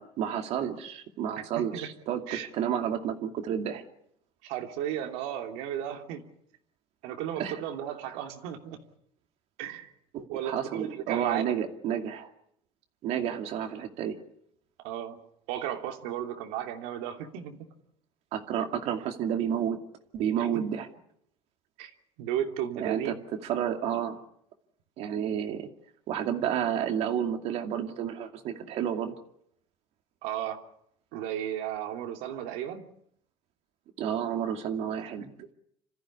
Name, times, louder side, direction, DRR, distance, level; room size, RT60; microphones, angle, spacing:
voice 1, 0.0-3.8 7.4-7.6 10.1-12.3 13.0-14.2 18.3-19.8 20.1-20.9 22.8-23.2 23.4-24.2 25.0-25.7 26.1-29.1 34.0-35.5, right 9 dB, 60° right, 5 dB, 2.5 m, -31 dB
voice 2, 1.4-1.9 2.3-2.5 4.4-6.2 7.0-8.8 9.6-9.9 10.3-11.5 14.8-15.2 15.5-17.6 20.4-20.5 21.8-21.9 22.2-23.1 30.2-30.6 31.1-32.8 35.1-35.2, right 10 dB, 85° right, 4 dB, 3.0 m, -34 dB
27.0 x 14.5 x 9.9 m, 0.74 s
cardioid pair, 135°, 12 cm